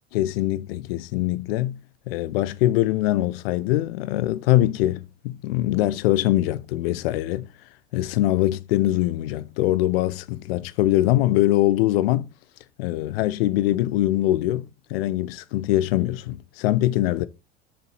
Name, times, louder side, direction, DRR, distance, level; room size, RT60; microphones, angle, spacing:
voice 1, 0.1-1.8 2.1-7.5 7.9-12.3 12.8-17.3, left 15 dB, 60° left, 0.8 m, -23 dB
7.6 x 6.8 x 4.2 m
figure-of-eight pair, 70°, 33 cm